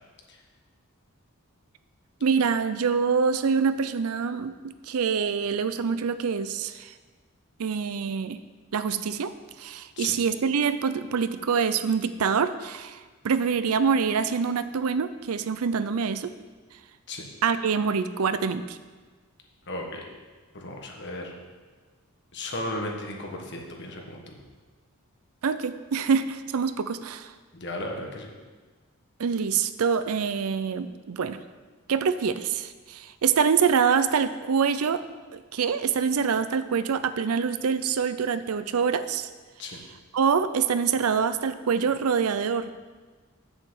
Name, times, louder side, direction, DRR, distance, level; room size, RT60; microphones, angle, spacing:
voice 1, 2.2-6.9 7.6-8.4 8.7-9.3 9.6-13.0 13.2-16.3 17.4-18.8 25.4-27.3 29.2-31.4 31.9-35.0 35.3-39.3 40.1-42.7, right 6 dB, 80° right, 12 dB, 0.5 m, -25 dB
voice 2, 19.7-20.0 20.5-21.3 22.3-24.4 27.5-28.3 39.6-39.8, left 1 dB, 55° left, 1 dB, 1.4 m, -35 dB
7.0 x 5.6 x 7.4 m, 1.4 s
head